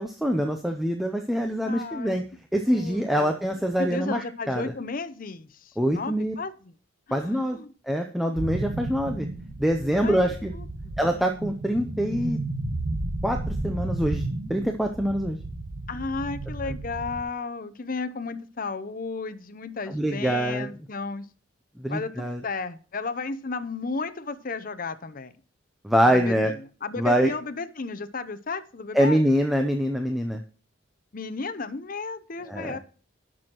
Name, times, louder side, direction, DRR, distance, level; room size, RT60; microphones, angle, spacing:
voice 1, 0.0-2.2 2.5-4.7 5.8-6.3 7.1-7.6 7.9-9.3 9.6-10.5 11.0-12.4 13.2-15.4 16.7-16.8 19.9-20.7 21.8-22.4 25.8-26.5 27.0-27.3 28.9-30.4 32.5-32.8, equal, ahead, 4 dB, 0.6 m, -25 dB
voice 2, 1.6-2.2 2.7-3.4 3.8-6.7 7.1-7.7 10.0-10.2 10.5-11.0 15.9-21.3 21.9-25.3 26.0-26.5 26.8-29.2 31.1-32.8, left 4 dB, 45° left, 11 dB, 0.7 m, -34 dB
sound 1, 8.4-17.2, right 2 dB, 70° right, 1.5 m, -33 dB
17.0 x 6.2 x 2.9 m, 0.39 s
head